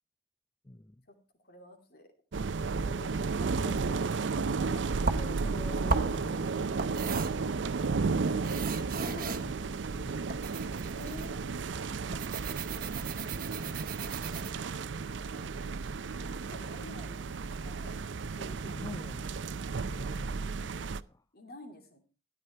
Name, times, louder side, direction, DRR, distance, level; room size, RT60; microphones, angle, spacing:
voice 1, 0.6-1.1 2.8-3.1 3.6-8.4 9.3-9.6 9.9-11.3 12.9-13.1 13.6-14.5 17.0-17.2 18.7-19.4 19.8-21.3, left 1 dB, 20° left, 0.5 m, -48 dB
voice 2, 1.4-2.1 2.7-3.8 4.7-5.0 8.5-8.7 8.9-9.4 10.9-11.7 15.2-15.7 16.1-18.0 18.4-18.8 20.9-21.0 21.3-22.0, left 1 dB, 55° left, 2.9 m, -50 dB
sound 1, 2.3-21.0, right 4 dB, 80° right, 0.5 m, -33 dB
sound 2, 5.0-14.5, right 4 dB, 50° right, 1.0 m, -37 dB
13.0 x 9.8 x 4.5 m
head